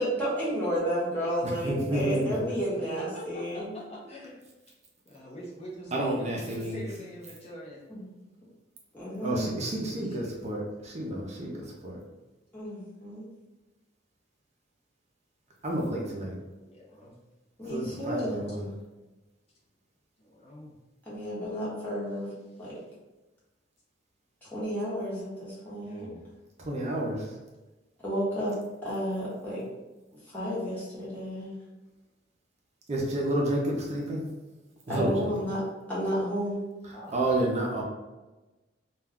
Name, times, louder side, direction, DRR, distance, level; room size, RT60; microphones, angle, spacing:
voice 1, 0.0-3.7 7.9-8.1 8.9-9.5 12.5-13.3 17.6-18.7 21.1-22.3 22.6-22.8 24.4-26.1 28.0-28.5 28.8-29.7 30.3-31.5 34.9-35.6 35.9-36.6, equal, 10° left, -9 dB, 1.0 m, -32 dB
voice 2, 1.4-2.3 5.9-6.8 9.2-12.0 15.6-16.3 17.7-18.7 26.6-27.2 32.9-34.2 34.9-35.3 37.1-37.8, right 1 dB, 35° right, -2 dB, 0.5 m, -30 dB
voice 3, 2.2-2.6 3.1-4.4 5.1-7.8 16.7-17.1 18.2-18.3 20.2-20.7 25.8-26.2 36.9-37.5, equal, 35° left, -5 dB, 0.5 m, -44 dB
2.2 x 2.2 x 3.5 m, 1.1 s
head